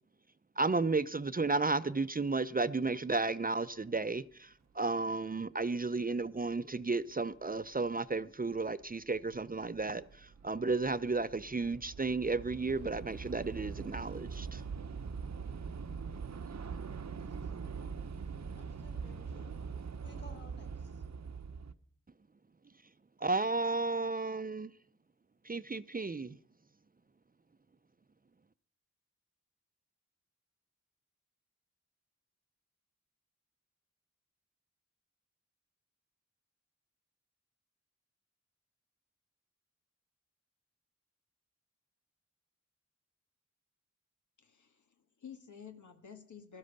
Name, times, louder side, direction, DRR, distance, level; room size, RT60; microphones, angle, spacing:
voice 1, 0.6-4.5 4.8-14.6 23.2-24.7 25.5-26.4, right 3 dB, 30° right, 0.6 m, -33 dB
Train / Subway metro underground, 7.7-7.8 8.7-8.9 9.2-21.7, right 5 dB, 65° right, 0.9 m, -43 dB
voice 2, 17.2-17.7 18.6-19.5 20.0-21.1, left 2 dB, 35° left, 3.8 m, -58 dB
voice 3, 44.4-46.6, left 7 dB, 90° left, 1.8 m, -52 dB
16.5 x 12.5 x 6.6 m
cardioid pair, 50°, 29 cm